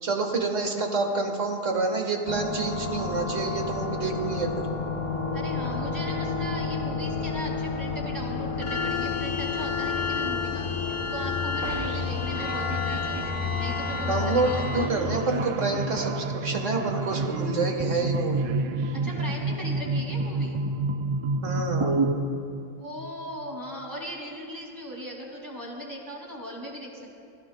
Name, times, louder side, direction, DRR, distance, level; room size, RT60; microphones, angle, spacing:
voice 1, 0.0-4.7 14.1-18.4 21.4-21.9, right 3 dB, 60° right, 3 dB, 1.8 m, -28 dB
sound 1, 2.3-14.9, left 4 dB, 30° left, 0.7 m, -30 dB
voice 2, 5.3-14.9 18.9-20.6 22.8-27.2, equal, 15° right, -2 dB, 2.5 m, -38 dB
sound 2, 11.6-19.9, right 6 dB, 85° right, 1.2 m, -39 dB
sound 3, 14.5-22.2, right 2 dB, 40° right, 0.4 m, -29 dB
27.0 x 15.5 x 2.3 m, 2.6 s
omnidirectional pair, 1.4 m